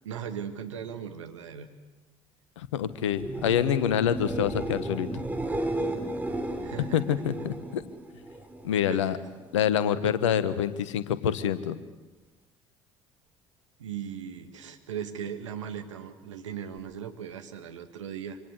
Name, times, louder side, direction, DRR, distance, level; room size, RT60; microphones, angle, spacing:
voice 1, 0.0-1.7 6.6-7.2 8.9-9.1 13.8-18.4, right 8 dB, 75° right, 6 dB, 2.0 m, -38 dB
voice 2, 2.6-5.2 6.9-7.8 8.6-9.2 9.5-11.8, left 9 dB, 75° left, 14 dB, 1.3 m, -26 dB
sound 1, 3.0-8.8 9.1-9.7 16.8-16.9, right 1 dB, 10° right, 4.3 m, -34 dB
26.0 x 25.0 x 8.2 m, 1.2 s
figure-of-eight pair, 55°, 16 cm